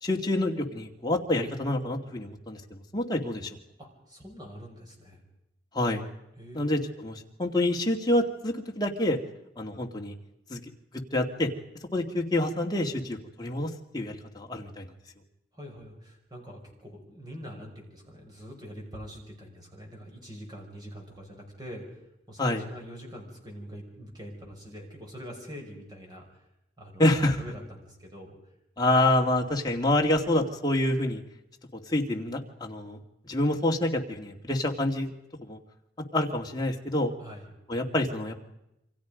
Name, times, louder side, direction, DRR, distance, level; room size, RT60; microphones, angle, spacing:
voice 1, 0.0-3.5 5.7-6.0 6.5-9.2 9.6-10.1 10.5-10.6 11.1-11.5 11.9-14.8 22.4-22.6 27.0-27.4 28.8-31.2 31.9-33.0 33.3-35.1 35.5-35.6 36.1-37.1 37.7-38.4, left 1 dB, 20° left, 1 dB, 2.3 m, -27 dB
voice 2, 3.8-5.2 6.4-6.9 15.5-21.8 22.3-26.3 26.8-28.4 37.2-37.5, equal, 25° right, 0 dB, 6.0 m, -44 dB
28.0 x 25.5 x 5.2 m, 0.85 s
head